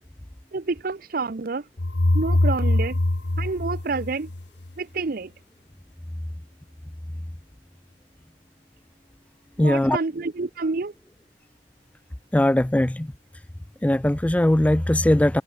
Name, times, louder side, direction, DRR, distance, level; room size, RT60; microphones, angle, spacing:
voice 1, 0.5-1.6 2.1-3.0 3.4-4.3 4.8-5.3 9.6-10.9, right 3 dB, 50° right, 0.6 m, -28 dB
sound 1, 1.8-4.7, left 1 dB, 65° left, 1.3 m, -23 dB
voice 2, 9.6-10.0 12.3-13.1 13.8-15.4, left 1 dB, 5° left, 0.3 m, -20 dB
head